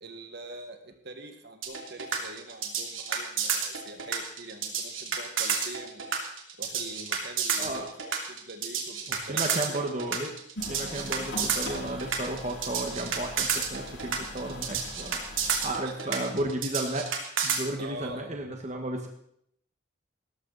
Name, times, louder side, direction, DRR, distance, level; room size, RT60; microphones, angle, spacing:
voice 1, 0.0-6.0 6.6-9.4 15.8-16.1 17.8-18.3, right 2 dB, 55° right, 6 dB, 1.8 m, -44 dB
sound 1, 1.6-17.6, right 7 dB, 85° right, 3.0 m, -30 dB
voice 2, 9.1-10.3 10.7-15.2 15.6-17.1 17.4-19.1, right 1 dB, 35° right, 2 dB, 1.5 m, -33 dB
sound 2, 10.6-15.7, left 1 dB, 70° left, 6.5 m, -42 dB
18.0 x 13.5 x 4.1 m, 0.70 s
head